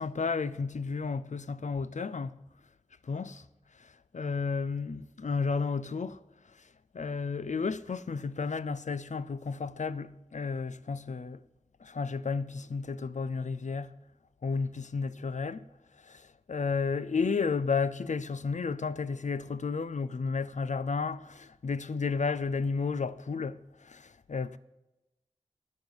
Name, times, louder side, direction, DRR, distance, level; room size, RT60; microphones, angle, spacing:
voice 1, 0.0-2.3 3.0-3.4 3.8-6.2 6.9-11.4 11.8-14.0 14.4-15.6 16.0-24.6, left 4 dB, 75° left, 0.5 m, -32 dB
11.5 x 8.7 x 8.0 m
wide cardioid pair, 65°, 13 cm